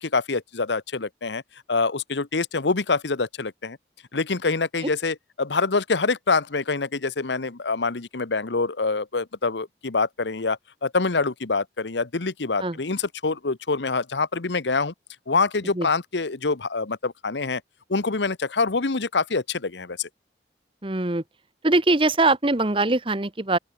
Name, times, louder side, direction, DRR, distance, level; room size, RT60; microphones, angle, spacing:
voice 1, 0.0-1.4 1.7-3.8 4.1-14.9 15.3-17.6 17.9-20.1, left 4 dB, 85° left, 1.1 m, -25 dB
voice 2, 20.8-21.2 21.6-23.6, right 2 dB, 30° right, 1.2 m, -22 dB
open air
head